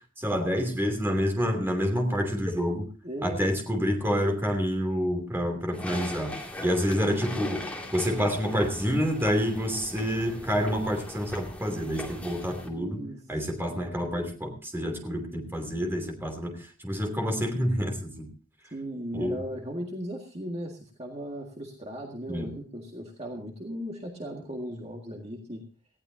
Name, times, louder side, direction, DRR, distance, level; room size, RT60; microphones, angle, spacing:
voice 1, 0.2-2.9 3.2-6.4 6.6-18.3 19.1-19.4 22.3-22.5, equal, 10° right, 3 dB, 2.9 m, -28 dB
voice 2, 3.0-3.5 12.8-13.2 18.7-25.6, equal, 30° right, 1 dB, 1.9 m, -37 dB
sound 1, 5.7-12.7, left 1 dB, 5° left, 2.4 m, -39 dB
19.0 x 15.5 x 2.8 m, 0.37 s
head